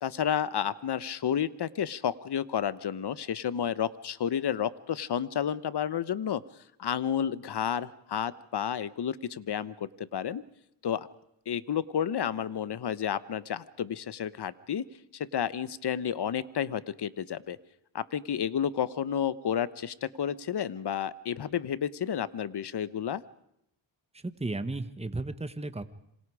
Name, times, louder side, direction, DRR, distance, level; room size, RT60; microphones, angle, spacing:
voice 1, 0.0-6.4 6.8-10.4 10.8-11.1 11.5-14.8 15.1-17.6 17.9-23.2, left 9 dB, 60° left, 16 dB, 1.2 m, -31 dB
voice 2, 24.1-25.8, right 2 dB, 15° right, 10 dB, 1.6 m, -34 dB
27.0 x 26.5 x 4.9 m, 0.78 s
cardioid pair, 70°, 46 cm